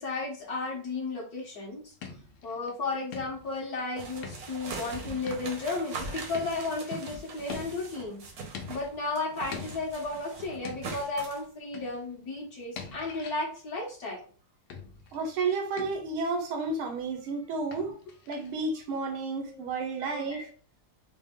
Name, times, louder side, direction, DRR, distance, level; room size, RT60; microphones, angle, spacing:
voice 1, 0.0-1.9 2.4-8.2 8.7-14.2 19.4-19.7 20.0-20.5, left 3 dB, 50° left, 1.5 m, -34 dB
sound 1, 1.8-2.8 3.1-3.9 4.2-4.8 5.3-7.0 7.5-8.1 8.5-9.2 9.5-10.1 10.6-11.2 11.7-12.1 12.8-13.5 14.7-15.3 15.8-16.2 17.7-18.5, left 5 dB, 80° left, 1.5 m, -44 dB
sound 2, 4.0-8.9 9.2-11.4, right 4 dB, 55° right, 1.2 m, -41 dB
voice 2, 15.1-17.9 18.3-20.5, right 3 dB, 75° right, 1.7 m, -31 dB
5.1 x 2.0 x 3.6 m
omnidirectional pair, 2.3 m